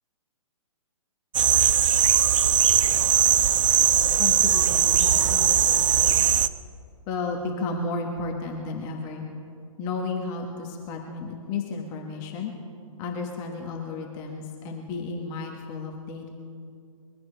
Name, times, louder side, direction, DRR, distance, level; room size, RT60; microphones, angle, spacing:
sound 1, 1.3-6.5, right 9 dB, 60° right, 0.6 m, -20 dB
voice 1, 4.2-6.3 7.1-9.3 9.8-12.5 13.0-16.3, left 4 dB, 20° left, 1 dB, 1.2 m, -33 dB
22.5 x 15.0 x 3.3 m, 2.4 s
hypercardioid pair, 155°, 18 cm